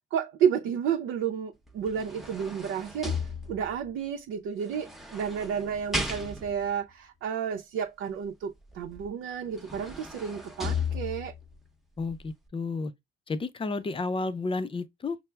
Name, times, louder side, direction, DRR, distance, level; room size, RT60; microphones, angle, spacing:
voice 1, 0.1-3.2 3.5-11.3, right 8 dB, 90° right, 0.6 m, -31 dB
sound 1, 1.7-3.9 4.7-6.7 9.0-9.1 9.5-11.5 12.0-12.1, left 3 dB, ahead, 0.8 m, -35 dB
voice 2, 12.0-12.9 13.3-15.2, left 3 dB, 25° left, 0.5 m, -31 dB
5.7 x 2.0 x 3.3 m
cardioid pair, 90°, 20 cm